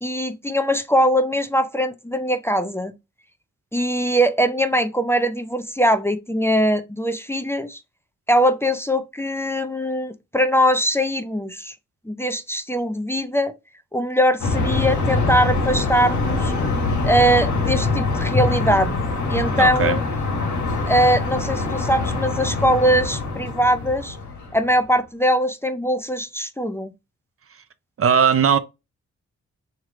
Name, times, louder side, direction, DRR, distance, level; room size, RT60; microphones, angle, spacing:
voice 1, 0.0-2.9 3.7-7.8 8.3-11.7 12.1-13.5 13.9-16.5 17.0-18.9 19.3-20.0 20.8-24.2 24.5-26.9, equal, 10° left, 0.5 m, -21 dB
sound 1, 14.4-24.7, left 3 dB, 85° left, 1.6 m, -24 dB
voice 2, 19.5-20.0 28.0-28.6, right 7 dB, 50° right, 0.6 m, -18 dB
3.3 x 3.0 x 3.6 m
cardioid pair, 60°, 29 cm